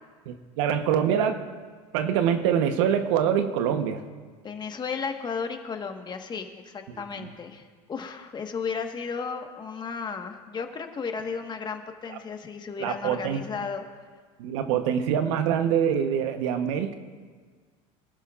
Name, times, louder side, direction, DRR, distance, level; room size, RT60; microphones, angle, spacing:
voice 1, 0.3-1.6 1.9-4.0 6.9-7.3 12.1-12.2 12.8-13.4 14.4-17.0, right 8 dB, 75° right, 8 dB, 1.0 m, -25 dB
voice 2, 4.4-13.8, left 5 dB, 30° left, 5 dB, 1.5 m, -34 dB
25.0 x 12.5 x 2.5 m, 1.5 s
supercardioid pair, 100°, 16 cm